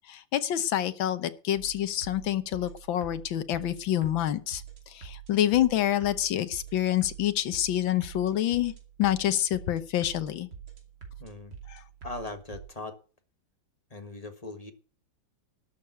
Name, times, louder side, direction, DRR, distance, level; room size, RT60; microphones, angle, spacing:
voice 1, 0.1-8.7 9.0-10.5 11.7-11.8, left 12 dB, 85° left, 12 dB, 1.8 m, -27 dB
sound 1, 1.6-12.7, right 8 dB, 65° right, 3.3 m, -46 dB
voice 2, 11.2-11.6 12.0-13.0 13.9-14.7, left 2 dB, 20° left, 7 dB, 1.3 m, -39 dB
12.5 x 6.7 x 8.0 m, 0.38 s
omnidirectional pair, 2.1 m